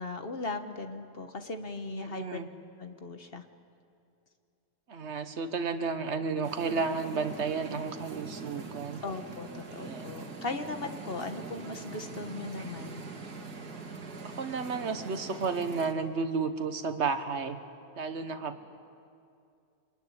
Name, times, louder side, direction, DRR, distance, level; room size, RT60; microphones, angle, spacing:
voice 1, 0.0-2.4 2.8-3.4 9.0-13.0, left 3 dB, 40° left, 7 dB, 1.4 m, -38 dB
voice 2, 1.9-2.5 4.9-9.0 9.7-10.1 14.2-17.6 18.0-18.6, right 5 dB, 45° right, 9 dB, 1.5 m, -32 dB
sound 1, 6.4-15.9, right 4 dB, 75° right, 2.5 m, -43 dB
26.0 x 20.0 x 9.9 m, 2.5 s
omnidirectional pair, 1.7 m